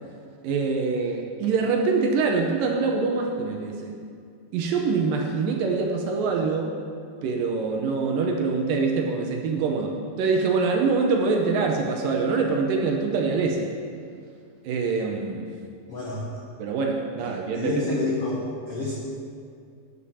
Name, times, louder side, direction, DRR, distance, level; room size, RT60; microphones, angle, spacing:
voice 1, 0.4-3.9 4.5-6.7 7.2-13.7 14.7-15.5 16.6-17.8, right 4 dB, 75° right, 2 dB, 2.2 m, -24 dB
voice 2, 15.9-16.2 17.5-18.9, left 3 dB, 70° left, -5 dB, 1.4 m, -29 dB
8.8 x 6.7 x 6.9 m, 2.3 s
omnidirectional pair, 4.4 m